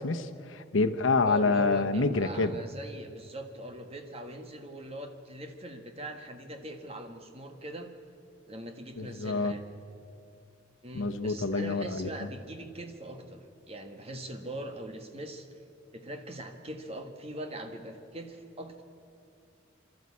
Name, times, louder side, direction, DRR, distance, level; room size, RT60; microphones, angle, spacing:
voice 1, 0.0-2.5 9.0-9.5 10.9-12.1, left 3 dB, 85° left, 9 dB, 0.9 m, -27 dB
voice 2, 1.2-7.9 8.5-9.6 10.8-15.5 15.9-18.8, right 1 dB, 30° right, 5 dB, 1.6 m, -41 dB
26.5 x 12.5 x 8.5 m, 2.6 s
head